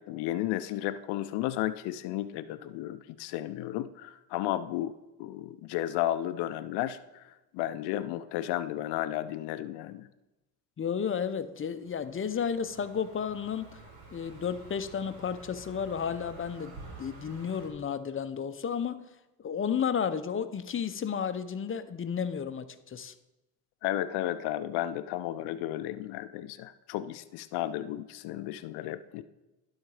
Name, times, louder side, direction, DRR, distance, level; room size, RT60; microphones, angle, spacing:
voice 1, 0.0-4.9 5.2-7.2 7.5-10.1 23.8-29.2, left 13 dB, 85° left, 12 dB, 0.5 m, -33 dB
voice 2, 10.8-13.8 14.1-19.1 19.4-23.1, left 7 dB, 35° left, 12 dB, 0.6 m, -32 dB
Car passing by, 11.7-17.7, right 2 dB, 80° right, 2.6 m, -50 dB
11.5 x 4.1 x 4.8 m, 0.98 s
supercardioid pair, 75°, 39 cm